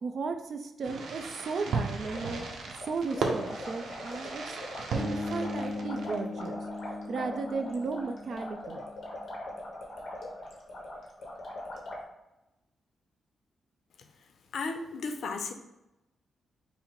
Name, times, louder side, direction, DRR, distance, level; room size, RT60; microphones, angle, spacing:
voice 1, 0.0-4.6 4.9-6.6 7.1-8.8, right 4 dB, 55° right, 6 dB, 0.5 m, -35 dB
Fireworks, 0.8-6.4, right 4 dB, 80° right, 0.9 m, -36 dB
sound 1, 2.1-12.0, left 1 dB, 50° left, 1.1 m, -42 dB
sound 2, 5.0-9.1, left 2 dB, 10° left, 0.7 m, -38 dB
voice 2, 14.5-15.5, left 4 dB, 70° left, 6 dB, 0.6 m, -34 dB
5.7 x 2.0 x 4.6 m, 0.95 s
wide cardioid pair, 140°, 0 cm